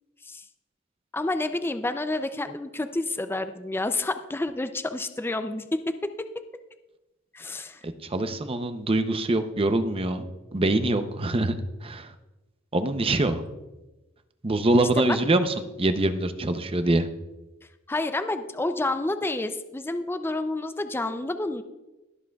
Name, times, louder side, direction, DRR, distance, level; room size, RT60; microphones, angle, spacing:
voice 1, 1.1-6.4 7.3-7.8 15.0-15.2 17.9-21.6, left 2 dB, 10° left, 9 dB, 0.4 m, -29 dB
voice 2, 7.8-10.3 10.5-11.5 11.8-12.1 12.7-13.4 14.4-17.1, right 2 dB, 30° right, 9 dB, 0.6 m, -24 dB
21.5 x 7.5 x 2.3 m, 1.1 s
head